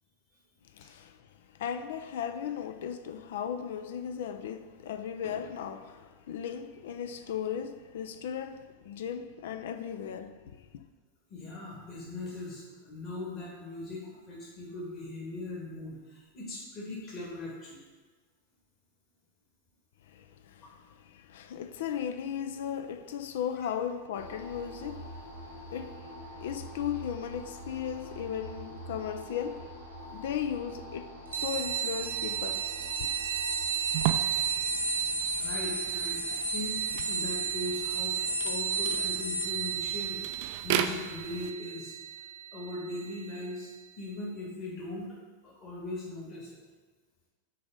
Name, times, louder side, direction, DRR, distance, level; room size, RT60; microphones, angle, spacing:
voice 1, 0.7-10.8 20.1-25.1 25.5-29.7 30.1-32.6 33.0-33.1, left 8 dB, 55° left, 0.4 m, -37 dB
voice 2, 11.3-17.8 20.6-20.7 35.4-36.8 37.1-38.1 38.4-41.9 42.5-45.2 45.4-46.6, left 2 dB, 35° left, 1.8 m, -39 dB
sound 1, 24.1-38.3, equal, 90° left, 1.5 m, -46 dB
sound 2, 31.3-43.4, right 5 dB, 75° right, 1.1 m, -32 dB
sound 3, 33.9-41.5, right 11 dB, 50° right, 0.4 m, -37 dB
6.8 x 4.1 x 5.1 m
figure-of-eight pair, 90°, 0 cm